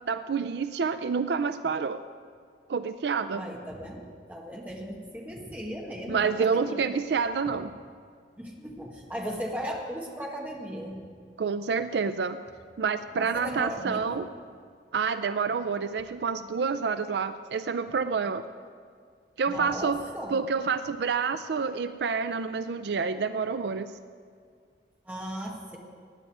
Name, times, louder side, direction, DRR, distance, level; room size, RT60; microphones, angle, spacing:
voice 1, 0.1-2.0 2.7-3.4 6.1-7.7 11.4-12.4 12.8-14.3 14.9-18.4 19.4-20.0 20.3-23.9, right 5 dB, 65° right, 11 dB, 0.4 m, -28 dB
voice 2, 3.3-6.9 8.4-11.0 13.1-14.2 19.5-20.4 25.1-25.8, equal, 10° right, -2 dB, 1.6 m, -37 dB
16.0 x 9.9 x 4.8 m, 2.1 s
head